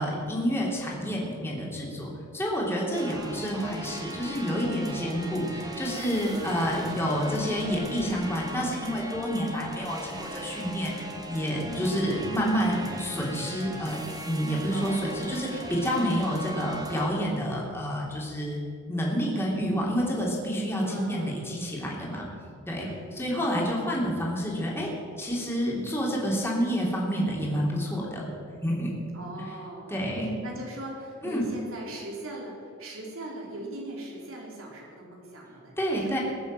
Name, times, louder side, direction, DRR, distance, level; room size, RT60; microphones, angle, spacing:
voice 1, 0.0-14.0 14.2-18.6 18.9-22.2 22.7-22.9 23.1-24.9 25.2-29.0 29.9-30.3 31.2-31.4 35.8-36.2, equal, 10° left, -3 dB, 3.2 m, -29 dB
sound 1, 2.9-17.1, right 1 dB, 20° right, 2.0 m, -39 dB
voice 2, 2.9-3.4 6.3-6.8 11.7-11.9 14.7-15.9 20.8-21.4 22.8-23.4 29.1-30.0 30.4-36.2, right 1 dB, 85° right, -2 dB, 4.0 m, -40 dB
21.0 x 7.1 x 7.6 m, 2.4 s
head